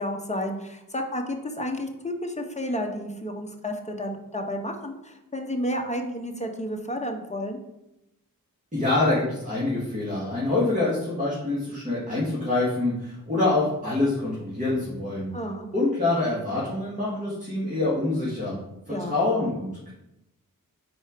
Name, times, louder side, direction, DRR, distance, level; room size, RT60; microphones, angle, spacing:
voice 1, 0.0-7.6 15.3-15.7 18.9-19.2, equal, 20° left, 3 dB, 0.9 m, -31 dB
voice 2, 8.7-15.3 15.7-18.6 18.9-19.9, left 2 dB, 20° right, -8 dB, 1.9 m, -26 dB
4.4 x 4.4 x 5.1 m, 0.87 s
wide cardioid pair, 70°, 36 cm